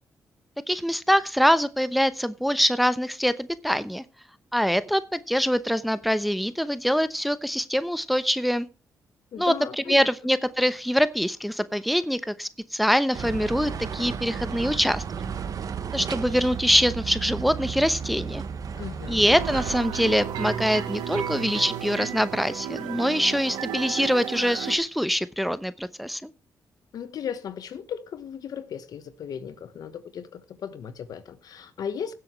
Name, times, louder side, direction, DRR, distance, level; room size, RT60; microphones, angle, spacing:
voice 1, 0.7-4.0 4.5-8.7 9.4-9.5 9.9-15.0 15.9-18.4 19.1-26.3, equal, ahead, 0.9 m, -24 dB
voice 2, 9.3-10.1 18.8-19.2 26.9-32.1, left 8 dB, 70° left, 1.2 m, -36 dB
sound 1, 13.1-19.8, right 7 dB, 60° right, 1.2 m, -33 dB
sound 2, 19.3-24.8, right 9 dB, 85° right, 1.2 m, -33 dB
17.0 x 7.8 x 3.2 m
cardioid pair, 65°, 7 cm